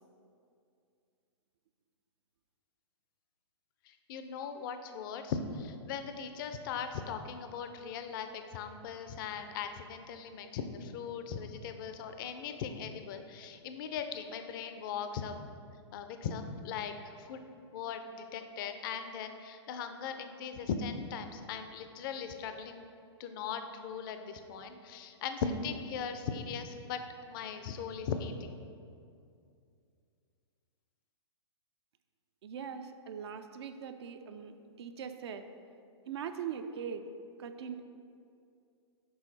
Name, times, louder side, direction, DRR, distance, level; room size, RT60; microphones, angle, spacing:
voice 1, 3.9-15.4 15.9-17.4 17.7-22.9 23.2-27.0 27.3-28.6, left 6 dB, 45° left, 8 dB, 0.4 m, -39 dB
voice 2, 32.4-35.5 36.1-37.1 37.4-37.8, right 7 dB, 65° right, 8 dB, 0.4 m, -41 dB
6.2 x 4.4 x 4.1 m, 2.4 s
hypercardioid pair, 125°, 15 cm